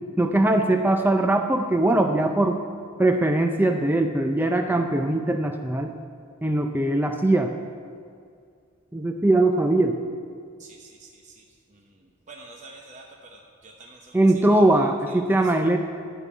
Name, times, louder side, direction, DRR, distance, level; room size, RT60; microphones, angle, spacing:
voice 1, 0.2-2.6 3.0-5.9 6.4-7.5 8.9-10.0 14.1-15.8, right 1 dB, 10° right, 4 dB, 0.4 m, -21 dB
voice 2, 10.6-11.4 11.7-12.0 12.3-14.6 15.1-15.5, right 3 dB, 35° right, 1 dB, 0.8 m, -47 dB
10.5 x 5.4 x 8.2 m, 2.2 s
head